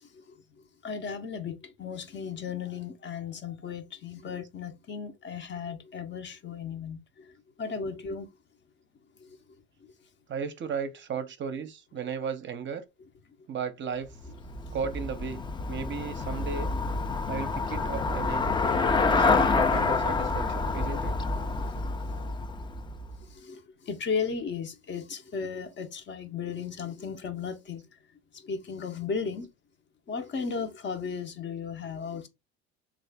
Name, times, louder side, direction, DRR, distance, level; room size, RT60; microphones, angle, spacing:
voice 1, 0.8-7.3 7.6-8.3 21.5-21.7 22.1-22.2 23.3-27.8 28.4-29.5 30.1-32.3, left 6 dB, 40° left, 0.7 m, -35 dB
voice 2, 10.3-12.8 13.5-14.2 14.7-15.4 15.7-16.7 17.3-18.5 19.1-21.1, right 6 dB, 40° right, 0.6 m, -35 dB
Traffic noise roadway noise / Bicycle, 14.1-23.3, left 3 dB, 15° left, 0.3 m, -28 dB
3.1 x 2.4 x 3.4 m
supercardioid pair, 90°, 30 cm